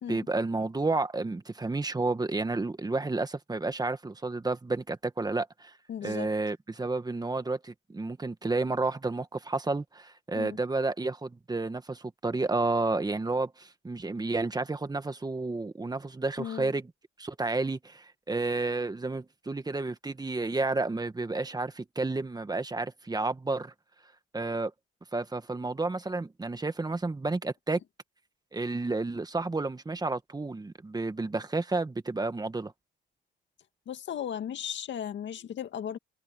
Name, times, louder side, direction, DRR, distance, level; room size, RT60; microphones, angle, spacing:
voice 1, 0.1-5.7 6.0-16.9 17.2-23.7 24.3-24.7 25.1-27.8 28.5-32.7, right 3 dB, 20° right, 1.7 m, -31 dB
voice 2, 5.9-6.3 10.3-10.5 16.4-16.7 33.9-36.0, left 9 dB, 65° left, 2.2 m, -36 dB
cardioid pair, 90°, 20 cm